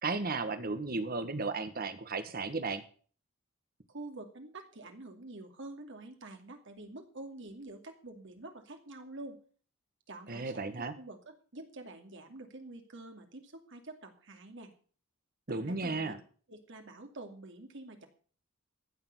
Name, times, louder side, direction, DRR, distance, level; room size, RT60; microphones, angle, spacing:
voice 1, 0.0-2.8 10.3-10.9 15.5-16.2, right 3 dB, 45° right, 11 dB, 1.5 m, -34 dB
voice 2, 3.9-9.4 10.1-14.7 15.5-16.1 16.5-18.1, right 2 dB, 65° right, 5 dB, 2.5 m, -47 dB
15.0 x 6.9 x 8.2 m, 0.43 s
head